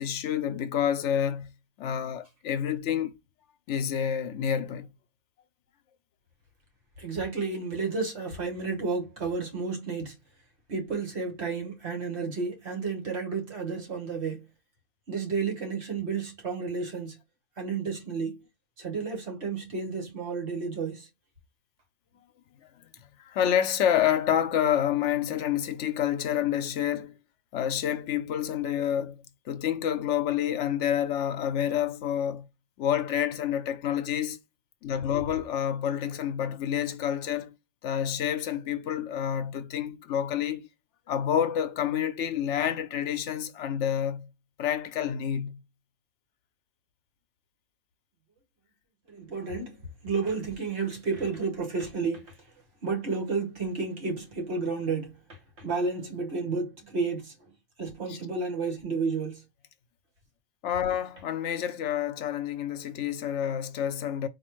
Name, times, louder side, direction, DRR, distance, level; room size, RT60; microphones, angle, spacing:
voice 1, 0.0-1.5 1.8-3.1 3.7-4.9 22.8-22.9 23.3-27.2 27.5-29.2 29.5-32.4 32.8-34.4 34.8-37.6 37.8-40.6 41.1-44.3 44.6-45.6 58.1-58.2 60.6-64.3, left 9 dB, 70° left, 0.9 m, -28 dB
voice 2, 7.0-10.2 10.7-14.4 15.1-17.2 17.6-18.4 18.8-21.1 49.1-49.8 50.0-52.3 52.8-57.5 57.8-59.4, right 4 dB, 60° right, 1.5 m, -31 dB
4.1 x 2.8 x 3.0 m
omnidirectional pair, 1.3 m